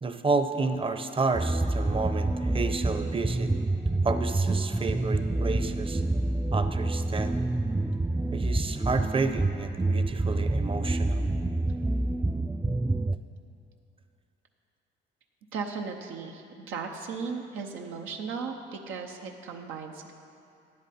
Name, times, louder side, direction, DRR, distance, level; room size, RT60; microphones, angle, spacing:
voice 1, 0.0-3.5 4.0-6.0 6.5-7.3 8.3-11.3, right 4 dB, 25° right, 9 dB, 0.7 m, -30 dB
sound 1, 1.3-13.2, right 2 dB, 10° right, 0.3 m, -27 dB
voice 2, 15.5-20.1, right 5 dB, 90° right, 2 dB, 0.8 m, -36 dB
12.0 x 10.0 x 4.2 m, 2.6 s
cardioid pair, 90°, 20 cm